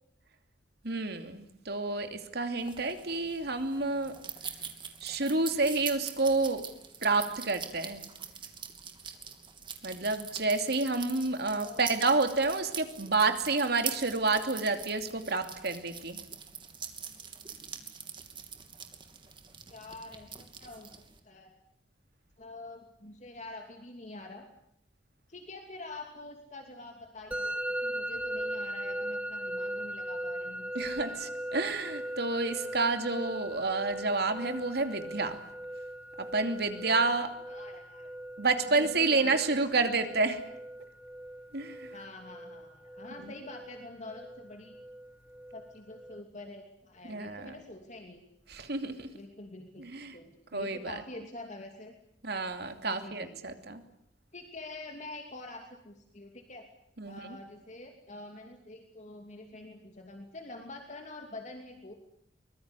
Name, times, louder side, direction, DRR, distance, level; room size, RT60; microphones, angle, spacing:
voice 1, 0.8-4.2 5.0-6.7 7.0-8.0 9.8-16.2 30.7-35.4 36.2-37.3 38.4-40.4 41.5-41.9 43.2-43.3 47.1-47.6 48.5-49.1 49.8-50.2 50.5-50.9 52.2-53.8 57.0-57.4, right 3 dB, 60° right, 7 dB, 2.8 m, -29 dB
sound 1, 2.6-21.2, right 7 dB, 30° right, 2.8 m, -44 dB
voice 2, 11.5-11.8 19.7-20.9 21.2-21.6 22.4-24.5 25.3-31.2 37.5-38.1 38.8-39.8 40.1-40.2 41.9-44.8 45.5-48.2 49.1-51.9 52.8-53.4 54.3-56.7 57.0-61.9, left 2 dB, 40° left, 4 dB, 2.8 m, -46 dB
Musical instrument, 27.3-46.2, right 1 dB, 10° right, 1.2 m, -39 dB
24.0 x 22.0 x 9.8 m, 0.76 s
head